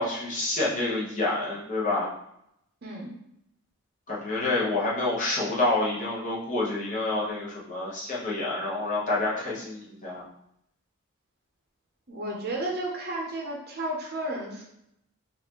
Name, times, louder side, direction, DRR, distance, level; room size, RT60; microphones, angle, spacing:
voice 1, 0.0-2.1 4.1-10.2, left 2 dB, 35° left, -6 dB, 1.0 m, -28 dB
voice 2, 2.8-3.1 12.1-14.6, right 1 dB, 45° right, -1 dB, 0.7 m, -32 dB
4.2 x 2.6 x 2.9 m, 0.79 s
head